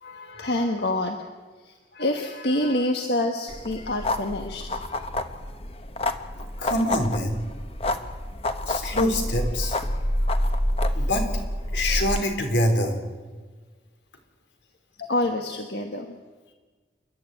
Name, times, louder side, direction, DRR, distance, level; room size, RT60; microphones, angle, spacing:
voice 1, 0.0-1.2 1.6-4.7 15.0-16.1, left 1 dB, 65° left, 4 dB, 1.5 m, -27 dB
sound 1, 3.5-12.2, left 1 dB, 35° left, 1.1 m, -28 dB
voice 2, 6.4-7.4 8.6-9.8 11.0-11.3 11.7-13.0, left 1 dB, 90° left, 5 dB, 3.7 m, -25 dB
29.5 x 11.5 x 9.2 m, 1.4 s
head